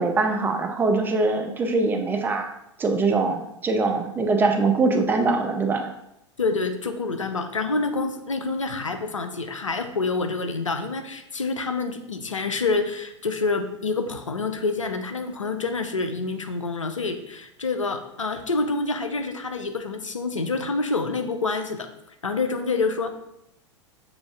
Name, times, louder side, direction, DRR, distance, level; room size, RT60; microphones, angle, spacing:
voice 1, 0.0-2.5 2.8-5.9, right 3 dB, 15° right, 4 dB, 0.4 m, -22 dB
voice 2, 6.4-23.1, left 3 dB, 80° left, 7 dB, 0.5 m, -27 dB
6.8 x 2.5 x 2.3 m, 0.82 s
figure-of-eight pair, 95°, 16 cm